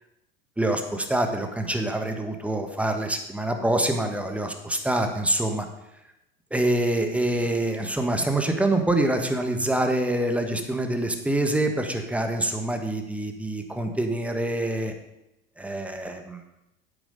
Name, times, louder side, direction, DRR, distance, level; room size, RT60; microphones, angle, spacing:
voice 1, 0.6-5.7 6.5-14.9 15.6-16.4, right 1 dB, 5° right, 5 dB, 1.4 m, -25 dB
9.1 x 8.6 x 5.3 m, 0.89 s
figure-of-eight pair, 75°, 30 cm